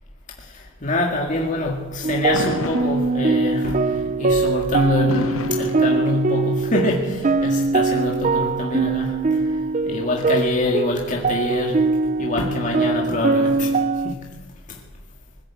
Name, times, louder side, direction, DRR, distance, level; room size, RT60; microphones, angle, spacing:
voice 1, 0.5-9.5 9.9-11.9 12.2-13.8 14.0-14.3 14.7-14.8, left 2 dB, 40° left, 0 dB, 2.0 m, -25 dB
sound 1, 2.0-14.1, right 4 dB, 35° right, 0.6 m, -22 dB
Fireworks, 2.3-3.6 5.1-6.6, left 3 dB, 85° left, 0.8 m, -31 dB
20.5 x 15.5 x 8.5 m, 1.3 s
head